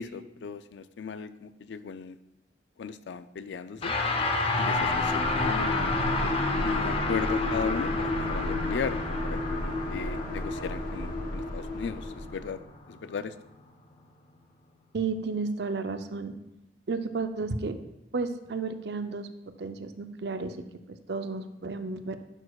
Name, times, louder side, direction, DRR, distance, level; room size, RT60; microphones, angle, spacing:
voice 1, 0.0-2.2 2.8-3.9 4.6-6.0 6.6-12.6 12.9-13.3, left 5 dB, 85° left, 12 dB, 0.4 m, -36 dB
sound 1, 3.8-13.3, left 2 dB, 35° left, 0.7 m, -30 dB
sound 2, 4.7-12.5, left 2 dB, 50° left, 1.1 m, -32 dB
voice 2, 14.9-16.4 16.9-17.8 18.1-19.3 19.6-20.6 20.9-22.2, right 4 dB, 65° right, 9 dB, 0.5 m, -32 dB
10.5 x 6.4 x 2.3 m, 0.87 s
head